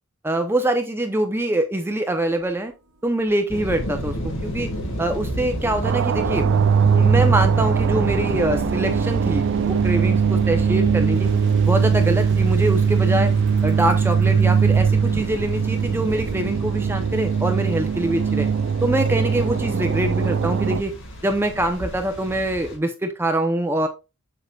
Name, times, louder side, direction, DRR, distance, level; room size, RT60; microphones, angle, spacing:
voice 1, 0.2-2.7 3.0-4.7 5.0-6.5 6.9-11.3 11.7-13.3 13.6-18.5 18.8-20.9 21.2-23.9, right 1 dB, 10° right, 6 dB, 0.6 m, -24 dB
sound 1, 1.4-1.5 2.2-16.5, right 2 dB, 80° right, 1.4 m, -44 dB
sound 2, 3.5-22.8, equal, 60° left, 1.9 m, -32 dB
sound 3, 5.8-20.8, right 6 dB, 55° right, 0.3 m, -20 dB
7.3 x 6.4 x 2.3 m, 0.27 s
head